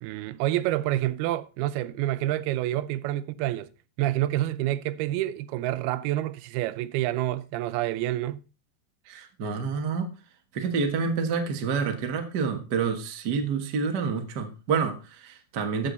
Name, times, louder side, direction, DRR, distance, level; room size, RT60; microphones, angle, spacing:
voice 1, 0.0-3.7 4.0-8.4, right 14 dB, 85° right, 2.6 m, -28 dB
voice 2, 9.1-10.1 10.5-15.9, right 5 dB, 60° right, 1.1 m, -28 dB
14.5 x 6.6 x 4.0 m
omnidirectional pair, 4.4 m